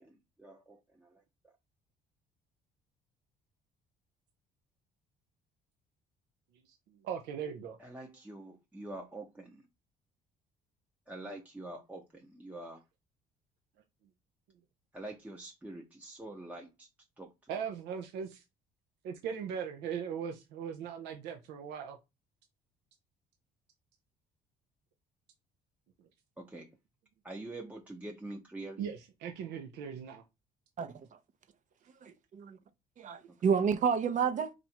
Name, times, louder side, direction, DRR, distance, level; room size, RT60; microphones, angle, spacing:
voice 1, 0.0-1.5 7.8-9.6 11.1-12.8 14.9-16.9 17.2-17.5 26.4-26.7 27.2-28.9, right 2 dB, 10° right, 0.7 m, -46 dB
voice 2, 7.0-7.8 17.5-18.4 19.0-22.0 28.8-30.2, right 7 dB, 90° right, 0.7 m, -39 dB
voice 3, 30.8-31.2 32.0-32.6 33.0-34.5, right 6 dB, 50° right, 0.7 m, -30 dB
4.3 x 2.6 x 4.3 m
cardioid pair, 110°, 17 cm